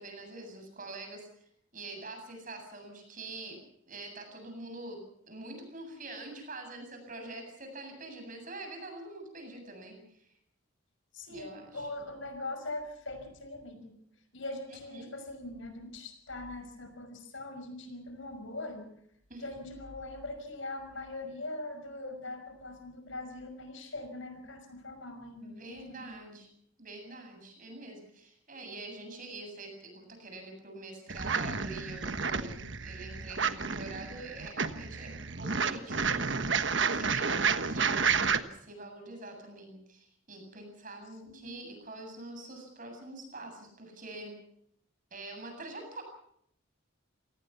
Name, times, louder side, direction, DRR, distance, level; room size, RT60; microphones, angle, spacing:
voice 1, 0.0-1.4 1.7-3.6 3.9-5.0 5.3-10.3 11.3-11.9 14.9-15.1 19.3-19.4 25.4-26.5 26.8-35.1 35.4-36.5 36.9-44.3 45.1-46.0, right 2 dB, 40° right, 5 dB, 8.0 m, -45 dB
voice 2, 11.1-13.9 14.3-18.9 19.4-26.0 41.2-41.6, left 2 dB, 65° left, 7 dB, 5.7 m, -41 dB
sound 1, 31.1-38.4, right 5 dB, 60° right, 1.3 m, -31 dB
28.0 x 18.5 x 5.8 m, 0.69 s
head